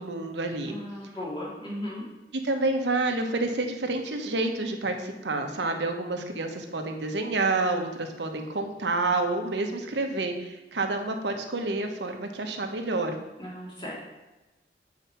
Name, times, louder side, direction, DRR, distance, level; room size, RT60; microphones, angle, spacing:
voice 1, 0.0-0.8 2.4-13.1, right 2 dB, 85° right, 5 dB, 1.0 m, -29 dB
voice 2, 0.7-2.0 13.4-13.9, left 1 dB, 25° left, -4 dB, 2.1 m, -36 dB
7.5 x 4.8 x 5.6 m, 1.0 s
head